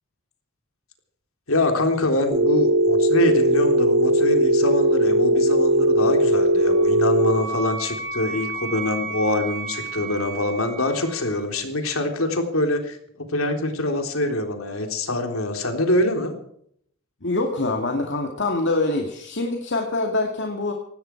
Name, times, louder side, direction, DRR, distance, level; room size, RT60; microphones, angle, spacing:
voice 1, 1.5-16.3, left 1 dB, 70° left, 5 dB, 3.6 m, -24 dB
Telephone, 2.3-7.3, right 1 dB, 50° right, 5.8 m, -18 dB
Wind instrument woodwind instrument, 6.6-11.4, right 3 dB, 70° right, 7.7 m, -33 dB
voice 2, 17.2-20.7, left 2 dB, 55° left, 3 dB, 2.4 m, -24 dB
18.5 x 16.5 x 4.7 m, 0.67 s
head